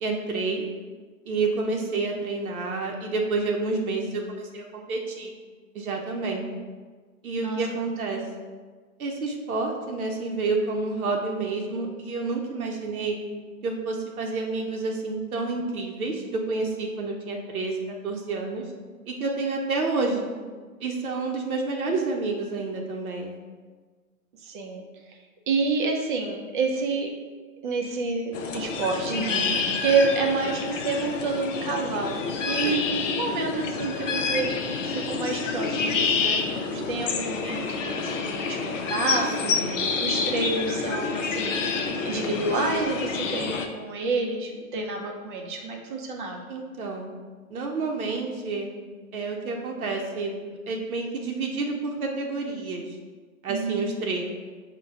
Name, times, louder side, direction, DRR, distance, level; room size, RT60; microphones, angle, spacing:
voice 1, 0.0-0.6 1.3-5.3 5.7-6.4 7.2-8.2 9.0-13.2 13.6-18.6 19.1-20.3 20.8-23.4 29.1-29.6 32.6-32.9 39.4-40.0 46.5-47.0 47.5-48.7 49.1-50.4 50.7-52.9 53.4-54.2, right 3 dB, 80° right, 1 dB, 0.7 m, -29 dB
voice 2, 24.4-25.2 25.5-27.1 27.6-29.3 29.8-34.5 34.8-39.5 40.0-41.6 42.0-46.5 53.5-54.0, right 3 dB, 35° right, 1 dB, 0.5 m, -28 dB
sound 1, 28.3-43.7, left 5 dB, 60° left, 0.6 m, -28 dB
5.1 x 2.2 x 3.5 m, 1.4 s
hypercardioid pair, 125°, 43 cm